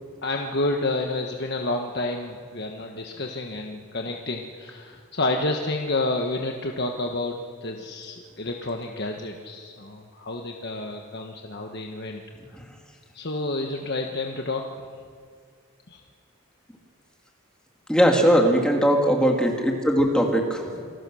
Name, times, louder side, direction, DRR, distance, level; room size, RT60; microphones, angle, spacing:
voice 1, 0.2-12.2 13.1-14.6 15.9-16.0, left 2 dB, 50° left, 2 dB, 1.3 m, -29 dB
voice 2, 17.9-20.8, equal, 5° left, 1 dB, 2.6 m, -20 dB
27.5 x 19.5 x 6.4 m, 2.1 s
head